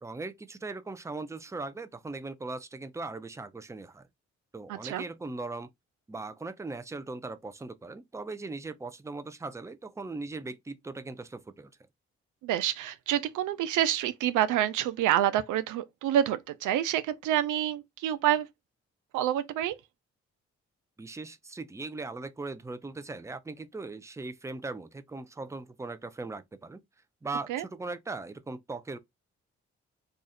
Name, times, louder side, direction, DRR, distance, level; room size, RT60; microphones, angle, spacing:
voice 1, 0.0-4.0 4.5-5.7 6.1-11.7 21.0-26.8 27.2-29.0, right 3 dB, 10° right, 0.5 m, -39 dB
voice 2, 12.4-18.5 19.1-19.8 27.5-27.6, right 11 dB, 75° right, 0.4 m, -27 dB
2.5 x 2.4 x 4.0 m
hypercardioid pair, 45°, 31 cm